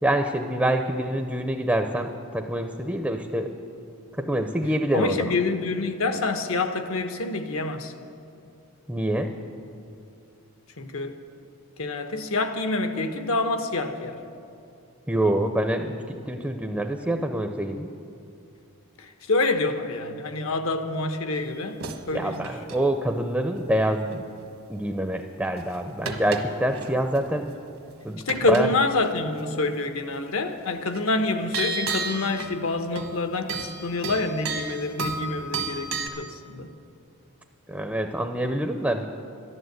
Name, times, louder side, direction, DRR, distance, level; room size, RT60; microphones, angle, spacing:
voice 1, 0.0-3.5 4.2-5.3 8.9-9.3 15.1-17.9 22.1-24.3 24.7-27.5 28.0-28.7 37.7-39.1, right 1 dB, 5° right, 0.5 m, -26 dB
voice 2, 4.9-7.9 10.8-11.2 11.8-14.2 19.0-21.8 22.1-22.5 28.3-36.7, left 3 dB, 75° left, 1.0 m, -27 dB
sound 1, 21.3-22.0 22.3-22.9 24.1-24.2 25.6-27.2 27.5-27.9 28.3-28.7 28.9-29.2 30.9-31.0 31.5-32.6 33.0-33.2 33.5-36.1, right 4 dB, 70° right, 1.2 m, -32 dB
11.5 x 11.0 x 7.9 m
head